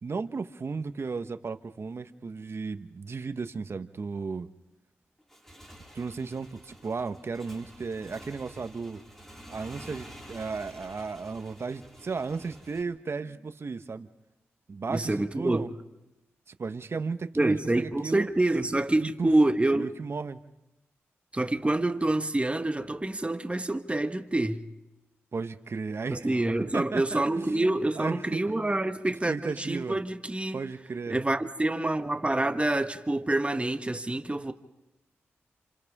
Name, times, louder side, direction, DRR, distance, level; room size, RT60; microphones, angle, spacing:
voice 1, 0.0-4.5 5.9-9.0 9.5-14.1 14.7-15.7 16.5-18.3 19.0-19.3 19.7-20.4 25.3-26.3 26.7-27.7 28.0-28.4 29.3-30.0 30.5-31.2, right 4 dB, 55° right, 1.3 m, -34 dB
Motorcycle / Engine, 5.2-12.8, equal, 10° left, 5.3 m, -49 dB
voice 2, 14.9-15.7 17.3-19.9 21.3-24.6 26.1-30.6 31.1-34.5, right 2 dB, 25° right, 1.5 m, -27 dB
29.0 x 27.5 x 3.7 m
supercardioid pair, 40°, 5 cm